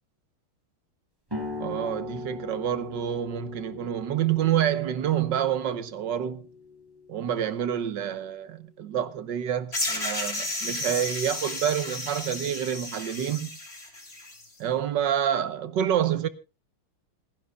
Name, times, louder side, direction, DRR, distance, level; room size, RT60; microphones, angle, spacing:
sound 1, 1.3-8.4, left 3 dB, 10° right, 4.3 m, -40 dB
voice 1, 1.6-6.5 7.1-13.5 14.6-16.3, right 10 dB, 60° right, 1.5 m, -28 dB
sound 2, 9.7-14.4, left 2 dB, 30° left, 3.8 m, -33 dB
27.0 x 10.5 x 2.4 m
omnidirectional pair, 2.3 m